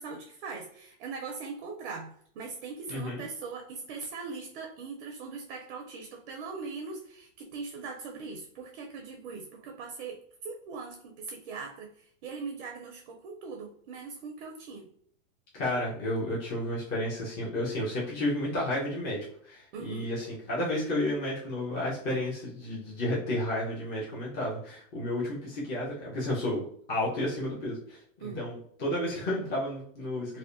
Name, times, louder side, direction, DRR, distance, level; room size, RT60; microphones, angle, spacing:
voice 1, 0.0-14.9 19.7-20.1 28.2-28.5, right 4 dB, 45° right, 2 dB, 0.4 m, -41 dB
voice 2, 2.9-3.2 15.5-26.6 26.9-30.4, left 1 dB, 25° left, -6 dB, 0.6 m, -32 dB
2.7 x 2.1 x 2.5 m, 0.63 s
supercardioid pair, 150°, 40 cm